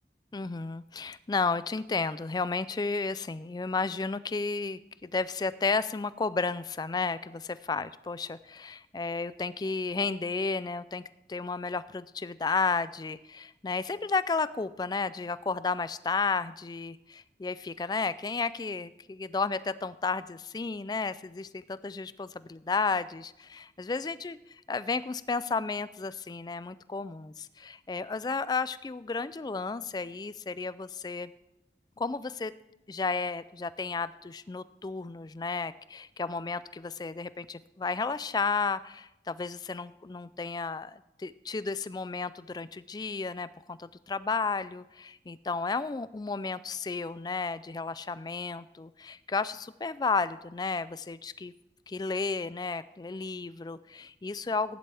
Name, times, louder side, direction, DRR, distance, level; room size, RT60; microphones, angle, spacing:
voice 1, 0.3-11.0 11.3-24.4 24.7-31.3 32.0-32.5 32.9-51.5 51.9-54.8, left 4 dB, 25° left, 16 dB, 0.3 m, -32 dB
15.5 x 11.0 x 3.4 m, 0.88 s
head